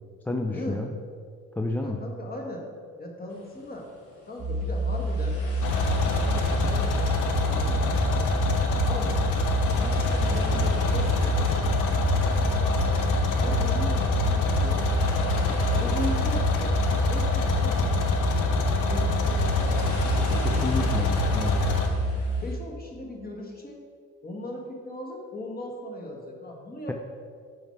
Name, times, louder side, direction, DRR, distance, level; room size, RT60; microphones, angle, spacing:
voice 1, 0.3-0.9 1.6-2.0 20.4-21.6, left 2 dB, 5° left, 3 dB, 0.3 m, -30 dB
voice 2, 1.8-2.6 3.0-3.9 4.3-5.4 6.1-8.0 8.8-9.2 9.7-11.4 12.2-12.7 13.4-14.8 15.8-16.8 17.1-18.5 18.9-20.5 22.4-23.8 24.2-26.9, left 1 dB, 30° left, 0 dB, 1.4 m, -38 dB
sound 1, 3.3-22.5, left 1 dB, 50° left, 1.6 m, -44 dB
sound 2, 4.4-22.4, right 1 dB, 30° right, 0.6 m, -28 dB
sound 3, 5.6-21.9, left 3 dB, 85° left, 0.8 m, -26 dB
5.5 x 4.5 x 5.8 m, 2.1 s
cardioid pair, 90°, 30 cm